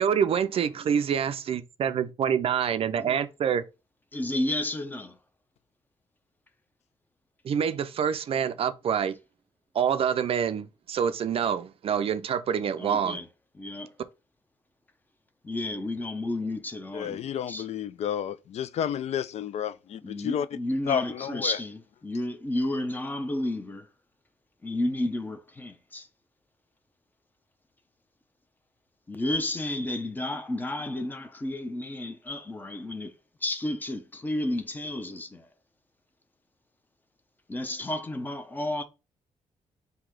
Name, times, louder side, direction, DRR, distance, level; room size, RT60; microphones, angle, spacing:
voice 1, 0.0-3.6 7.4-9.2 9.7-13.2, right 8 dB, 50° right, 0.4 m, -26 dB
voice 2, 4.1-5.2 12.8-13.3 13.6-13.9 15.4-17.2 17.5-17.6 20.0-23.9 24.6-26.1 29.1-33.1 33.4-35.5 37.5-38.8, left 1 dB, 15° left, 0.6 m, -31 dB
voice 3, 16.9-20.5 20.9-21.6, left 9 dB, 60° left, 0.4 m, -31 dB
3.9 x 2.8 x 4.5 m
wide cardioid pair, 165°, 13 cm